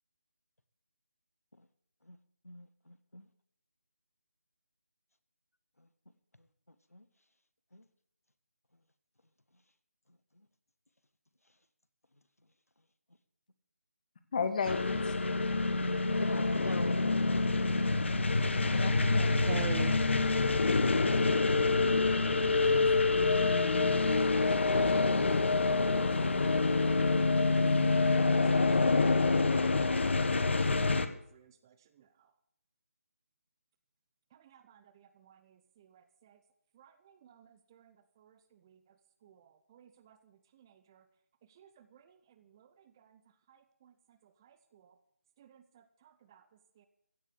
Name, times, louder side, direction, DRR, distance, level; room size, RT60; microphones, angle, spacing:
voice 1, 2.4-3.2 6.9-7.0 7.7-7.8 15.8-17.0, left 1 dB, 80° left, 1.5 m, -42 dB
voice 2, 14.3-15.1 18.7-19.5 22.4-23.3, left 5 dB, 30° left, 1.6 m, -36 dB
sound 1, 14.7-31.1, left 3 dB, 50° left, 1.3 m, -27 dB
voice 3, 19.5-20.0 24.1-24.4 30.7-32.1 34.3-36.4 36.8-38.8 39.2-40.2 40.5-41.0 41.6-42.7 43.0-43.2 43.5-43.9 44.2-44.9 45.4-46.4 46.8-46.9, right 9 dB, 15° right, 0.6 m, -49 dB
15.5 x 7.4 x 8.2 m
figure-of-eight pair, 155°, 8 cm